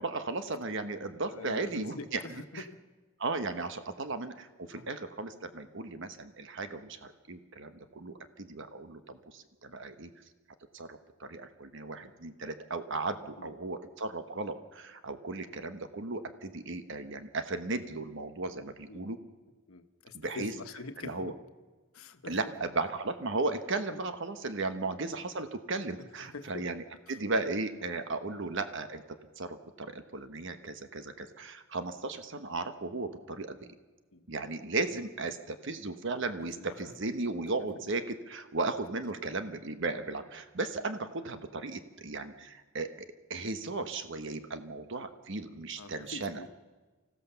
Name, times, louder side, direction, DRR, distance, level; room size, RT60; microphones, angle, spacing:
voice 1, 0.0-2.2 2.5-2.6 3.2-10.1 10.7-19.2 20.1-20.5 21.0-21.3 22.3-26.8 27.1-29.0 29.4-33.7 34.3-46.4, right 3 dB, 60° right, 9 dB, 1.1 m, -36 dB
voice 2, 1.3-2.8 4.7-4.9 6.7-6.8 13.4-13.5 18.9-19.1 19.7-21.3 21.9-22.4 23.9-24.0 24.8-24.9 26.0-26.7 28.3-28.4 34.1-34.3 36.4-37.0 45.8-46.5, left 3 dB, 90° left, 8 dB, 1.2 m, -45 dB
25.5 x 15.5 x 6.9 m, 1.3 s
head